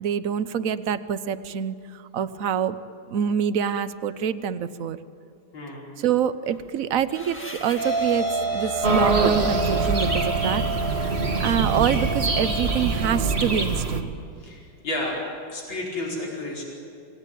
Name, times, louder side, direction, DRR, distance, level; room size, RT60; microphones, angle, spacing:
voice 1, 0.0-2.8 3.1-5.0 6.0-10.6 11.4-14.1, right 8 dB, 60° right, 12 dB, 0.8 m, -26 dB
voice 2, 5.5-5.9 11.0-11.1 14.4-15.2 15.5-16.6, left 1 dB, 60° left, -3 dB, 5.7 m, -31 dB
sound 1, 6.5-12.1, right 1 dB, 5° left, 1.6 m, -40 dB
sound 2, 7.8-13.4, right 2 dB, 45° left, 4.7 m, -28 dB
sound 3, 8.8-14.0, right 3 dB, 30° right, 1.8 m, -24 dB
27.5 x 19.0 x 9.2 m, 2.7 s
omnidirectional pair, 2.4 m